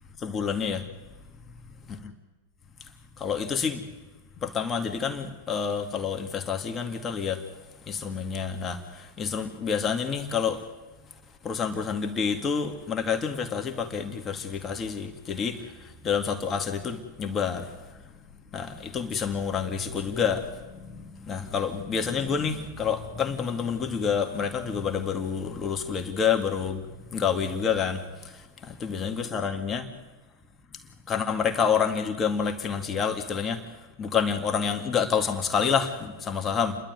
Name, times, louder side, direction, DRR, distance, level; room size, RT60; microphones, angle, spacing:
voice 1, 0.2-0.8 1.9-2.1 3.2-3.8 4.4-7.4 7.9-10.6 11.4-15.6 16.0-17.6 18.5-26.9 27.1-28.0 28.8-29.9 31.1-33.6 34.0-36.8, left 6 dB, 30° left, 2.1 m, -28 dB
29.5 x 11.5 x 9.5 m
hypercardioid pair, 100°, 0 cm